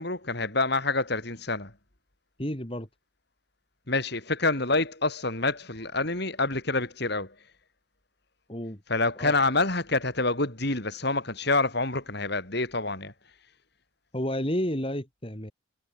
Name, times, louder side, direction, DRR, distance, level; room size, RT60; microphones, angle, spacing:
voice 1, 0.0-1.7 3.9-7.3 8.9-13.1, left 3 dB, 55° left, 4.9 m, -27 dB
voice 2, 2.4-2.9 8.5-8.8 9.2-9.3 14.1-15.5, equal, 25° left, 4.0 m, -31 dB
head